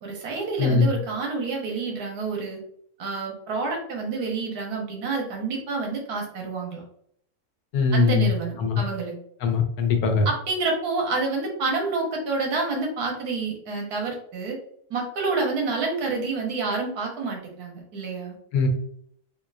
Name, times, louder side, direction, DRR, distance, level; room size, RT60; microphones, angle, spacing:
voice 1, 0.0-2.6 3.0-6.8 7.9-9.1 10.2-14.6 14.9-18.4, right 4 dB, 90° right, 0 dB, 1.4 m, -28 dB
voice 2, 0.6-0.9 7.7-8.3 8.6-8.8 9.4-10.3 18.5-18.7, left 5 dB, 80° left, 5 dB, 1.2 m, -21 dB
3.5 x 2.9 x 2.4 m, 0.67 s
omnidirectional pair, 1.6 m